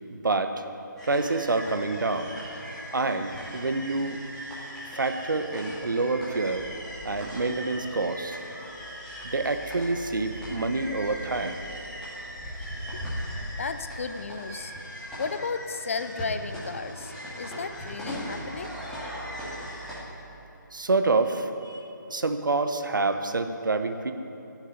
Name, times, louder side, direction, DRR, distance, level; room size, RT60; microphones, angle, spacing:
voice 1, 0.1-0.6 1.0-2.3 2.9-4.2 4.9-6.7 7.0-8.4 9.2-11.6 20.7-24.1, right 3 dB, 70° right, 8 dB, 1.2 m, -27 dB
sound 1, 1.0-20.0, equal, 5° left, 2.5 m, -39 dB
sound 2, 8.2-12.0 17.2-21.3, right 4 dB, 60° left, 3.2 m, -49 dB
voice 2, 13.6-14.7 15.2-18.7, left 4 dB, 40° left, 11 dB, 0.6 m, -34 dB
15.0 x 7.3 x 9.7 m, 2.8 s
figure-of-eight pair, 160°, 11 cm